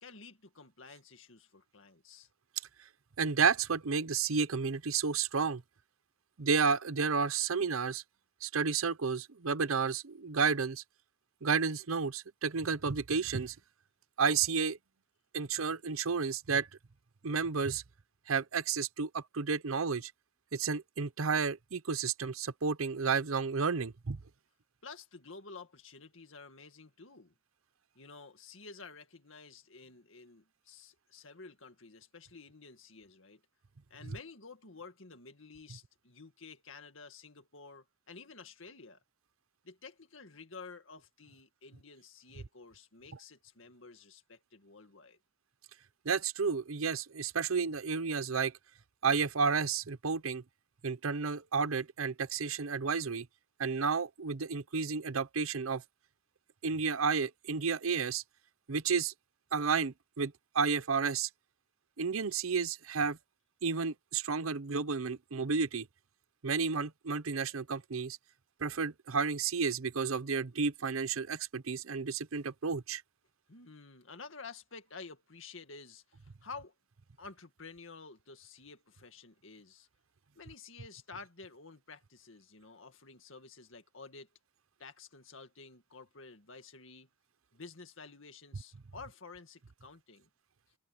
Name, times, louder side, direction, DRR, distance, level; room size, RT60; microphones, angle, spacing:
voice 1, 0.0-2.3 24.8-27.3 27.9-33.4 33.9-39.0 39.6-45.2 73.5-76.7 77.2-79.9 80.4-84.3 84.8-87.1 87.5-90.3, left 4 dB, 65° left, 2.1 m, -51 dB
voice 2, 3.2-5.6 6.4-8.0 8.4-10.8 11.4-13.6 14.2-14.8 15.3-16.7 17.2-17.8 18.3-20.1 20.5-24.2 46.0-48.5 49.0-50.4 50.8-53.3 53.6-55.8 56.6-58.2 58.7-59.1 59.5-61.3 62.0-63.2 63.6-65.9 66.4-68.2 68.6-73.0, right 5 dB, 80° right, 0.8 m, -31 dB
open air
head